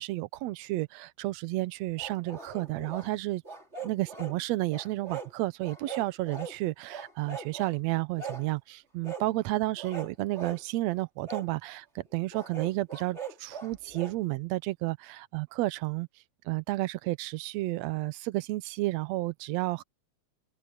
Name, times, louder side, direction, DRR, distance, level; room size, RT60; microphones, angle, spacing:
voice 1, 0.0-3.4 3.8-16.1 16.5-19.8, right 18 dB, 75° right, 1.8 m, -31 dB
sound 1, 2.0-3.1 3.4-4.4 4.7-5.3 5.6-6.6 6.9-7.7 8.2-8.5 9.0-9.3 9.8-10.6 11.3-11.5 12.3-14.2, right 5 dB, 20° right, 4.3 m, -40 dB
omnidirectional pair, 3.3 m